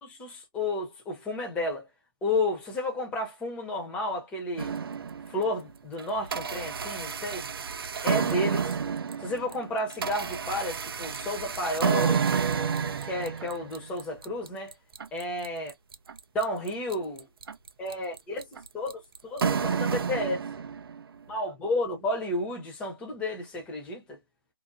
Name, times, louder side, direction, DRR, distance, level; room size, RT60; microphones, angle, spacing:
voice 1, 0.0-1.9 2.2-4.8 5.3-7.5 8.0-8.8 9.2-12.2 12.8-14.7 15.1-15.7 16.3-17.3 17.8-18.5 18.7-20.4 21.3-24.2, left 1 dB, 10° left, 1.0 m, -32 dB
sound 1, 4.6-5.5 6.0-21.0, right 6 dB, 80° right, 0.5 m, -30 dB
2.7 x 2.4 x 2.3 m
hypercardioid pair, 160°, 12 cm